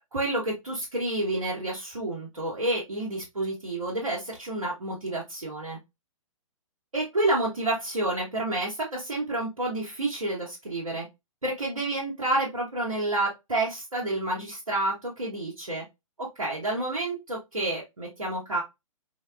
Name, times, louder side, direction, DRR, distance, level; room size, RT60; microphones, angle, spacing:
voice 1, 0.1-5.8 6.9-11.1 11.4-15.8 16.2-18.6, right 2 dB, 75° right, -5 dB, 1.1 m, -29 dB
3.9 x 2.2 x 2.4 m, 0.22 s
figure-of-eight pair, 120°, 18 cm